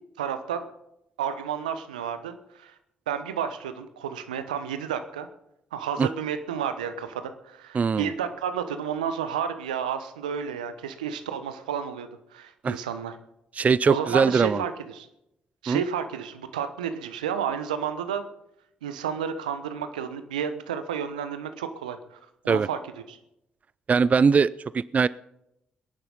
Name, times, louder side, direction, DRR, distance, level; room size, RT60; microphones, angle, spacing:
voice 1, 0.2-0.6 1.2-2.7 3.1-5.3 5.7-13.1 13.9-15.1 15.6-18.2 18.8-22.2 22.4-22.8 23.1-23.2, right 8 dB, 85° right, 10 dB, 1.0 m, -31 dB
voice 2, 7.7-8.1 12.6-12.8 13.6-14.6 15.7-15.8 22.5-22.7 23.9-25.1, right 5 dB, 35° right, 19 dB, 0.4 m, -21 dB
22.0 x 11.0 x 4.1 m, 0.83 s
figure-of-eight pair, 40°, 4 cm